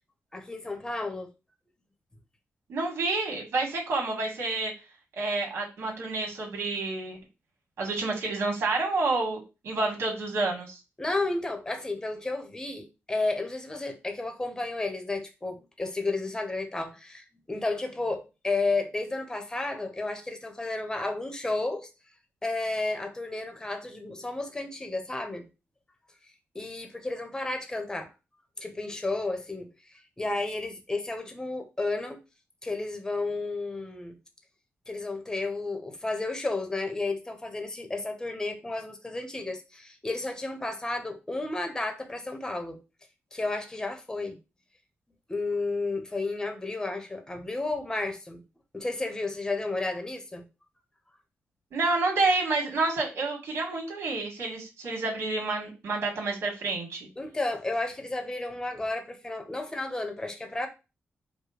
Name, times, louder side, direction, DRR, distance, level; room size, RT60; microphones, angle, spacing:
voice 1, 0.3-1.3 11.0-21.9 22.4-25.5 26.5-28.1 28.6-32.2 32.6-34.2 34.9-42.8 43.3-44.4 45.3-48.4 48.7-50.5 57.2-60.7, left 2 dB, 15° left, 0.9 m, -32 dB
voice 2, 2.7-4.7 5.1-7.2 7.8-10.8 51.7-57.1, right 3 dB, 80° right, 1.7 m, -29 dB
4.9 x 2.2 x 4.8 m
wide cardioid pair, 120°, 4 cm